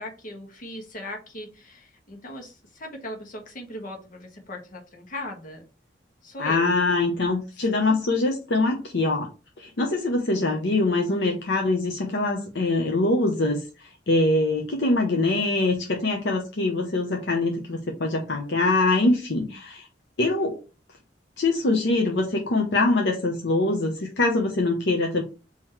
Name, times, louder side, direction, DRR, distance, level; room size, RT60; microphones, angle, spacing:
voice 1, 0.0-5.6 6.2-6.7 7.5-7.7 19.0-19.5, left 1 dB, 50° left, 2 dB, 1.3 m, -39 dB
voice 2, 6.4-9.3 9.6-19.9 20.2-20.6 21.4-25.2, left 2 dB, 70° left, 2 dB, 0.8 m, -23 dB
3.8 x 2.9 x 4.3 m, 0.31 s
head